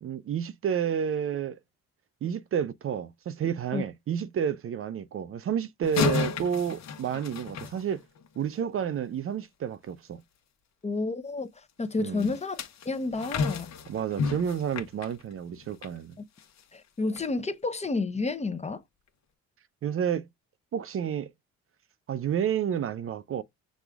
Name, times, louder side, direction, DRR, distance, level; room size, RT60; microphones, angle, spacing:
voice 1, 0.0-1.6 2.2-8.0 8.4-10.2 12.0-12.3 13.9-16.2 19.8-20.3 20.7-21.3 22.1-23.4, right 8 dB, 45° right, 0.5 m, -30 dB
sound 1, 5.8-8.4 12.2-16.0 16.4-16.6 17.2-17.3, left 5 dB, 65° left, 1.1 m, -32 dB
voice 2, 10.8-11.5 11.8-12.6 12.8-13.7 16.7-18.8, left 3 dB, 20° left, 0.6 m, -30 dB
6.1 x 2.4 x 3.4 m
cardioid pair, 90°, 30 cm